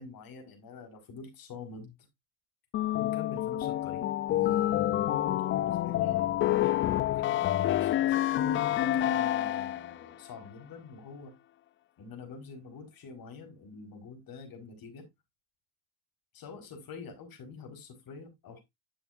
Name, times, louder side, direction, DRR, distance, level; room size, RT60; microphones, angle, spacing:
voice 1, 0.0-1.9 2.9-6.4 6.9-11.3 12.0-15.1 16.3-18.6, left 4 dB, 45° left, 4.3 m, -46 dB
sound 1, 2.7-10.0, left 13 dB, 25° left, 0.4 m, -28 dB
11.0 x 7.0 x 2.5 m
supercardioid pair, 90°, 49 cm